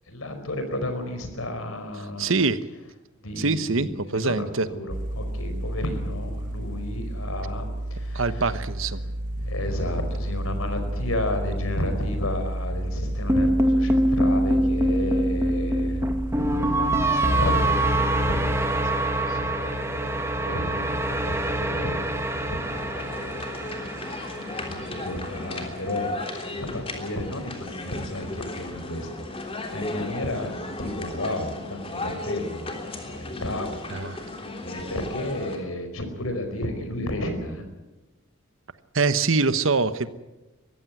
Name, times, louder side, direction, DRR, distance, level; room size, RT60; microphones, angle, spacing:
voice 1, 0.1-2.3 3.2-3.9 4.2-7.6 7.9-8.4 9.3-23.9 24.6-26.1 26.5-33.9 34.1-37.7, left 1 dB, 90° left, 7 dB, 4.9 m, -33 dB
voice 2, 2.2-2.6 3.4-4.7 8.1-9.0 33.9-34.2 38.9-40.1, right 4 dB, 70° right, 13 dB, 1.2 m, -24 dB
sound 1, 4.9-17.1, right 1 dB, 40° right, 1.3 m, -31 dB
sound 2, 13.3-25.5, right 1 dB, 15° right, 2.0 m, -25 dB
sound 3, 22.6-35.6, left 2 dB, 30° left, 3.4 m, -35 dB
22.5 x 15.5 x 9.6 m, 1.1 s
head